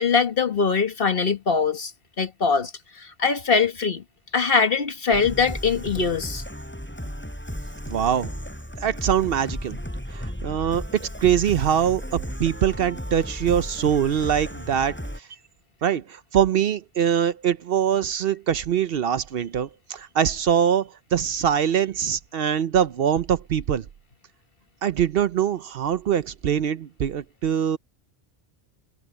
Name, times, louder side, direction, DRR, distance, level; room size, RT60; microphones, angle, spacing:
voice 1, 0.0-1.9 2.2-4.0 4.3-6.4, left 5 dB, 60° left, 1.7 m, -22 dB
sound 1, 5.1-15.2, equal, 10° left, 6.8 m, -34 dB
voice 2, 7.9-8.3 8.8-9.8 10.1-15.0 15.8-23.8 24.8-27.8, right 9 dB, 65° right, 0.8 m, -23 dB
omnidirectional pair, 1.1 m